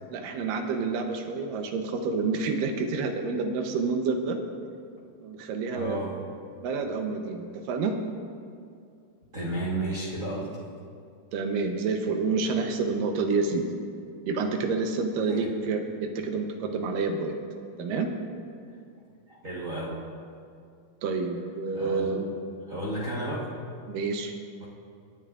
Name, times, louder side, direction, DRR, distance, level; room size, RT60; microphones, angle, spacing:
voice 1, 0.1-4.4 5.2-6.0 6.6-8.0 11.3-13.7 14.3-17.3 17.8-18.1 21.0-22.3 23.9-24.3, right 4 dB, 80° right, 4 dB, 2.6 m, -28 dB
voice 2, 5.7-6.2 9.3-10.6 15.3-15.4 19.3-20.0 21.7-22.2 22.7-23.5 24.6-24.7, right 1 dB, 60° right, -6 dB, 0.8 m, -32 dB
27.5 x 9.2 x 2.5 m, 2.4 s
omnidirectional pair, 3.9 m